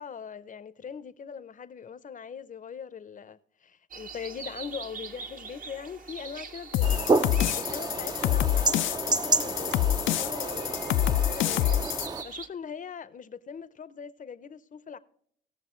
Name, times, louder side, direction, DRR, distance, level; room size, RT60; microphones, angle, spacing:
voice 1, 0.0-7.1 7.5-15.0, left 7 dB, 40° left, 0.7 m, -41 dB
sound 1, 3.9-12.5, right 5 dB, 45° right, 1.0 m, -44 dB
sound 2, 6.7-12.1, left 12 dB, 75° left, 0.5 m, -27 dB
sound 3, 6.8-12.2, right 3 dB, 20° right, 0.5 m, -30 dB
18.5 x 6.8 x 3.1 m
cardioid pair, 90°, 20 cm